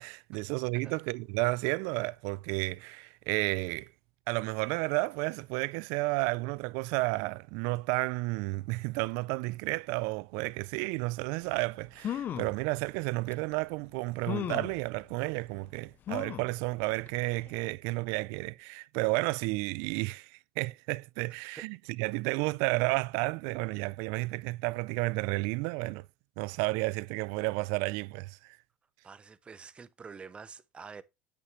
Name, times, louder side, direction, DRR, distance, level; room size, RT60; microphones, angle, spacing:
voice 1, 0.0-3.9 4.3-26.1 26.4-28.6, right 24 dB, 75° right, 0.3 m, -32 dB
sound 1, 11.6-11.7 12.0-12.6 13.3-13.4 14.3-14.8 16.1-16.5 17.1-17.2 17.5-17.6, left 10 dB, 40° left, 0.5 m, -35 dB
voice 2, 29.0-31.0, right 5 dB, 20° right, 0.6 m, -47 dB
8.3 x 6.1 x 3.1 m
supercardioid pair, 115°, 5 cm